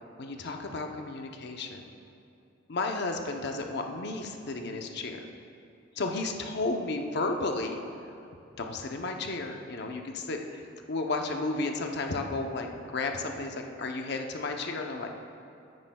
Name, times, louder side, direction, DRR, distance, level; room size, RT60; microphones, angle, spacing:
voice 1, 0.2-1.8 2.7-5.3 6.0-7.8 8.6-10.6 10.9-12.7 12.9-15.2, left 3 dB, 60° left, 3 dB, 0.7 m, -33 dB
14.0 x 9.6 x 2.3 m, 2.7 s
head